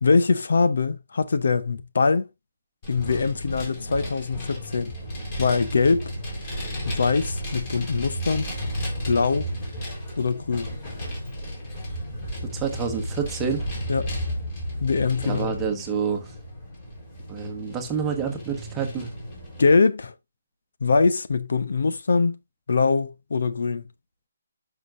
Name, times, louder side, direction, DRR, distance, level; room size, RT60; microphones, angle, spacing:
voice 1, 0.0-2.3 2.9-4.9 5.4-6.1 6.9-8.5 9.1-9.5 10.2-10.7 13.9-14.2 14.8-15.5 19.6-20.1 20.8-22.3 22.7-23.9, left 4 dB, 70° left, 0.9 m, -22 dB
Vehicle, 2.8-19.7, equal, 25° left, 4.0 m, -33 dB
voice 2, 12.4-13.6 15.2-16.3 17.3-19.1, right 6 dB, 10° right, 1.3 m, -28 dB
9.9 x 6.0 x 2.5 m
hypercardioid pair, 170°, 0 cm